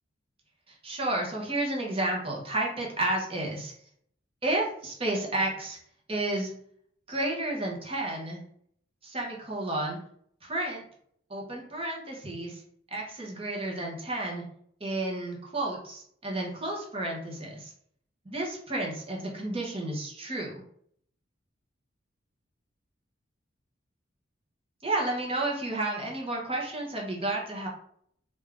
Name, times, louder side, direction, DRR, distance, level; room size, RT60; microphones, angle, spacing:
voice 1, 0.7-3.7 4.4-5.8 6.1-6.5 7.1-8.4 9.0-10.0 10.4-10.8 11.3-12.6 12.9-14.4 14.8-17.7 18.2-20.6 24.8-27.7, right 2 dB, 30° right, -2 dB, 1.0 m, -31 dB
3.5 x 2.6 x 3.5 m, 0.65 s
head